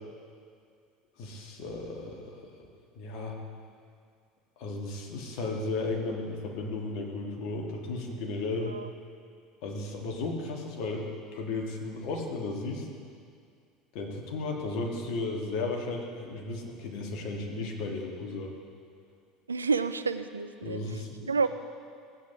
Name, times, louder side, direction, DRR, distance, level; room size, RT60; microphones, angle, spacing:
voice 1, 1.2-2.7 2.9-3.4 4.6-8.8 9.6-11.1 11.3-12.9 13.9-18.5 20.6-21.3, left 3 dB, 55° left, 0 dB, 1.5 m, -34 dB
voice 2, 8.6-8.9 19.5-21.0 21.3-21.5, right 4 dB, 80° right, 11 dB, 0.3 m, -30 dB
16.0 x 8.5 x 2.9 m, 2.2 s
figure-of-eight pair, 70°, 0 cm